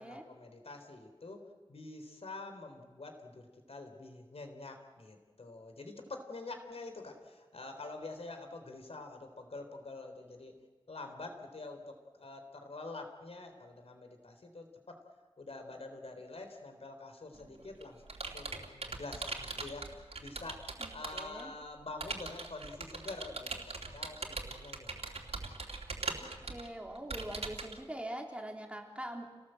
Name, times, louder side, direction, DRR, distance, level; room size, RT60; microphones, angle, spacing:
voice 1, 0.0-10.6 10.9-15.0 15.4-18.0 18.3-23.6 23.9-25.3, left 3 dB, 75° left, 6 dB, 3.6 m, -47 dB
Computer keyboard, 17.4-21.4 22.0-27.8, right 3 dB, 80° right, 2.9 m, -41 dB
voice 2, 20.8-21.5 26.2-29.4, right 1 dB, 10° right, 1 dB, 3.4 m, -43 dB
29.0 x 19.0 x 7.8 m, 1.4 s
wide cardioid pair, 75°, 10 cm